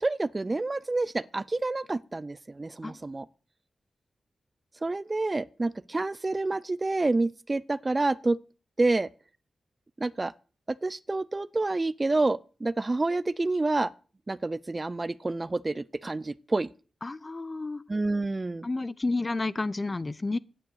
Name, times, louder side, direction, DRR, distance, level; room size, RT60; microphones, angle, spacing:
voice 1, 0.0-3.2 4.8-8.4 8.8-9.1 10.0-10.3 10.8-13.9 14.3-16.7 17.9-18.7, right 2 dB, 35° right, 0.5 m, -28 dB
voice 2, 17.0-17.8 18.6-20.4, left 3 dB, 35° left, 0.7 m, -30 dB
9.5 x 8.2 x 8.0 m
supercardioid pair, 45°, 0 cm